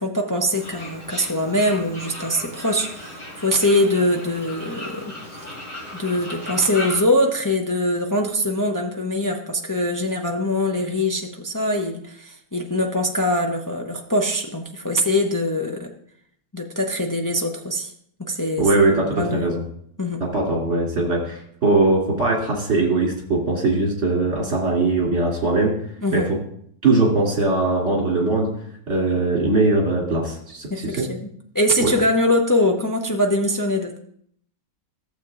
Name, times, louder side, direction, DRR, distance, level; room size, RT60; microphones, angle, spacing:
voice 1, 0.0-5.5 5.9-15.9 16.5-17.9 18.2-18.7 19.1-19.5 20.0-20.2 26.0-26.3 30.7-31.2 31.5-34.0, left 1 dB, 35° left, 1 dB, 0.3 m, -23 dB
Fowl, 0.5-7.0, left 1 dB, 60° left, 4.9 m, -36 dB
voice 2, 18.6-19.6 20.2-25.8 26.1-26.4 26.8-28.5 28.9-31.1 31.8-31.9, right 2 dB, 50° right, -2 dB, 3.0 m, -20 dB
15.0 x 7.3 x 2.5 m, 0.66 s
omnidirectional pair, 1.6 m